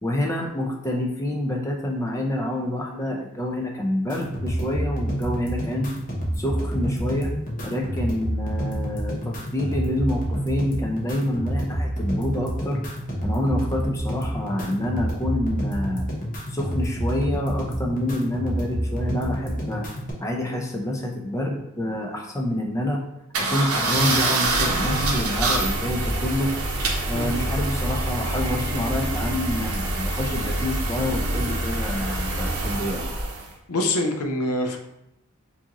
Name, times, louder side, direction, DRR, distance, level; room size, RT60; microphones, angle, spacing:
voice 1, 0.0-5.9 6.4-7.3 7.6-12.8 13.2-16.1 16.5-19.9 20.2-23.0 23.4-26.5 27.1-33.0, left 1 dB, 15° left, 0 dB, 0.5 m, -27 dB
sound 1, 4.1-20.1, equal, 35° left, 0.8 m, -28 dB
sound 2, 23.3-33.5, right 3 dB, 70° right, 0.7 m, -27 dB
sound 3, 24.4-33.3, equal, 20° right, 1.5 m, -30 dB
voice 2, 33.7-34.8, left 1 dB, 80° left, 4 dB, 0.6 m, -25 dB
4.9 x 2.7 x 2.9 m, 0.85 s
head